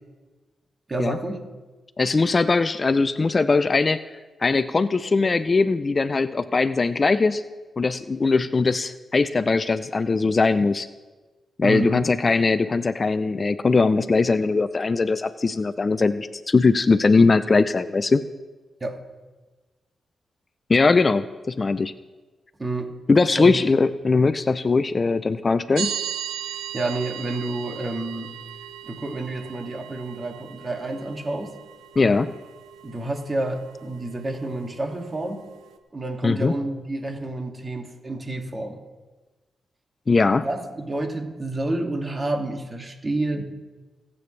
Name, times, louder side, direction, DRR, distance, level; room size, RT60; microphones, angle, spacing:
voice 1, 0.9-1.4 11.6-12.1 18.8-19.0 22.6-22.9 23.4-23.6 26.7-28.3 28.8-31.5 32.8-35.4 35.9-38.8 40.4-43.4, right 2 dB, 35° right, 2 dB, 2.3 m, -29 dB
voice 2, 2.0-4.0 4.4-7.4 7.8-10.9 11.6-18.2 20.7-21.9 23.1-26.0 32.0-32.3 36.2-36.5 40.1-40.5, left 4 dB, 40° left, 13 dB, 0.5 m, -20 dB
sound 1, 25.8-35.8, right 10 dB, 85° right, 0.8 m, -38 dB
23.0 x 8.6 x 3.3 m, 1.3 s
supercardioid pair, 50°, 0 cm